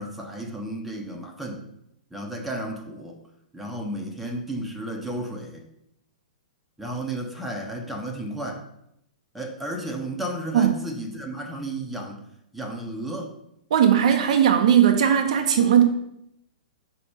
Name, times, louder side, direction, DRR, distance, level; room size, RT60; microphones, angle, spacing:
voice 1, 0.0-1.6 2.1-3.2 3.5-5.7 6.8-8.7 9.3-12.2 12.5-13.3, right 1 dB, ahead, 0 dB, 0.9 m, -33 dB
voice 2, 13.7-15.8, right 9 dB, 50° right, 6 dB, 0.6 m, -18 dB
5.0 x 4.2 x 4.9 m, 0.78 s
figure-of-eight pair, 110°, 5 cm